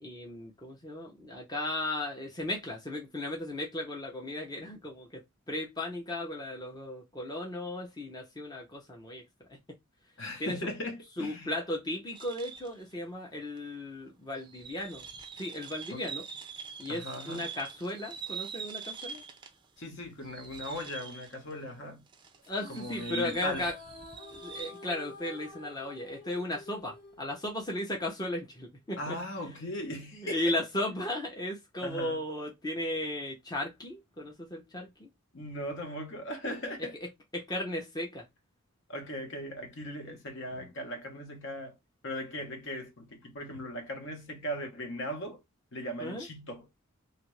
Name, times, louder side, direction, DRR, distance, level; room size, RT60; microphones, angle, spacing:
voice 1, 0.0-5.2 5.5-9.2 9.5-9.6 10.4-10.6 11.2-15.0 15.4-16.3 16.8-19.2 22.5-23.7 24.3-29.2 30.1-35.1 37.3-38.2 40.1-40.2 46.0-46.3, left 1 dB, 20° left, 0.7 m, -36 dB
voice 2, 10.2-11.5 15.9-16.0 16.9-17.5 19.8-22.0 22.7-23.7 29.0-30.6 31.8-32.2 35.3-37.0 38.9-41.8 42.0-45.4 45.7-46.7, left 1 dB, 60° left, 1.0 m, -38 dB
sound 1, 12.1-12.8 13.6-13.7 14.4-19.6 20.0-21.6 22.1-24.9, right 6 dB, 20° right, 0.4 m, -44 dB
sound 2, 22.4-27.9, left 2 dB, 40° left, 1.2 m, -49 dB
2.8 x 2.5 x 3.0 m
head